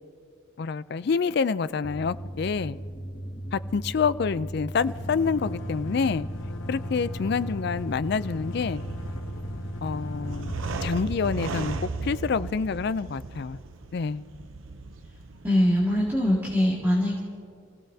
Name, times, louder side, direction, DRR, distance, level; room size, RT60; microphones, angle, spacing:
voice 1, 0.6-2.8 3.5-6.3 6.7-8.8 9.8-10.5 10.8-13.6 13.9-14.2, left 5 dB, 55° left, 15 dB, 0.4 m, -27 dB
sound 1, 1.8-11.9, right 1 dB, 25° left, 1.1 m, -37 dB
sound 2, 2.2-2.3 2.5-2.6 2.9-13.5, left 1 dB, 85° left, 1.0 m, -40 dB
sound 3, 8.1-16.6, right 3 dB, 85° right, 0.7 m, -37 dB
voice 2, 15.4-17.2, left 1 dB, 10° right, -6 dB, 1.9 m, -22 dB
28.0 x 16.0 x 2.8 m, 2.3 s
head